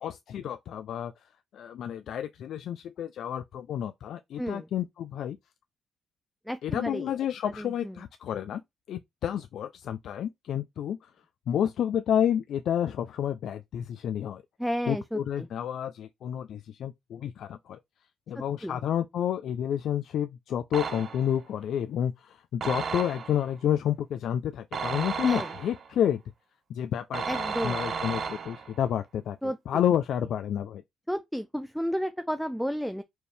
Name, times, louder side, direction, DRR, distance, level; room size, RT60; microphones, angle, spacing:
voice 1, 0.0-1.1 1.5-5.4 6.6-8.6 8.9-11.1 11.5-14.4 14.9-17.8 18.3-26.2 26.7-29.4 29.7-30.8, left 10 dB, 70° left, 0.3 m, -30 dB
voice 2, 4.4-4.7 6.5-7.1 7.6-8.0 14.6-15.5 18.3-18.8 25.2-25.6 27.3-28.0 29.4-29.8 31.1-33.0, equal, ahead, 0.4 m, -32 dB
sound 1, 20.7-21.4 22.6-23.5 24.7-25.9 27.1-28.8, right 5 dB, 50° right, 0.7 m, -33 dB
4.4 x 2.7 x 3.3 m
cardioid pair, 90°, 0 cm